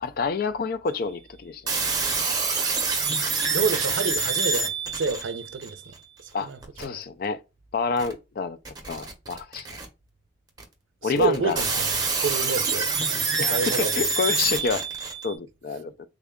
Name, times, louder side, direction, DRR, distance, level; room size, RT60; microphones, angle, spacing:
voice 1, 0.0-1.6 6.3-6.5 6.8-7.4 7.7-8.6 8.9-9.7 11.0-11.6 13.4-14.9 15.2-15.9, left 5 dB, 50° left, 0.3 m, -28 dB
sound 1, 1.7-5.7 6.6-6.8 8.0-8.1 8.6-9.8 10.6-10.7 11.2-15.3, right 4 dB, 20° right, 0.7 m, -26 dB
voice 2, 3.5-5.9 6.2-7.0 11.0-14.1 14.4-14.5, right 4 dB, 90° right, 0.5 m, -29 dB
3.5 x 2.2 x 3.5 m
head